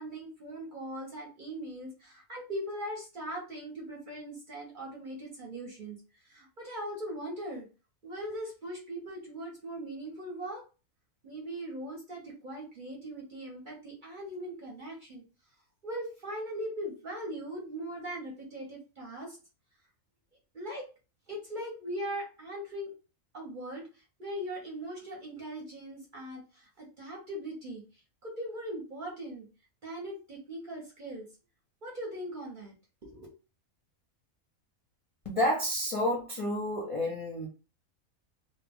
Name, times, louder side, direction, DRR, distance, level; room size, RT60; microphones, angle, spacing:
voice 1, 0.0-6.0 6.2-7.7 8.0-10.6 11.2-15.2 15.8-19.4 20.5-20.8 21.3-22.9 23.3-27.8 28.2-29.5 29.8-31.3 31.8-32.7 33.0-33.3, right 1 dB, 45° right, 0.8 m, -40 dB
voice 2, 35.2-37.5, left 1 dB, 35° left, 0.5 m, -30 dB
2.3 x 2.2 x 3.4 m
omnidirectional pair, 1.5 m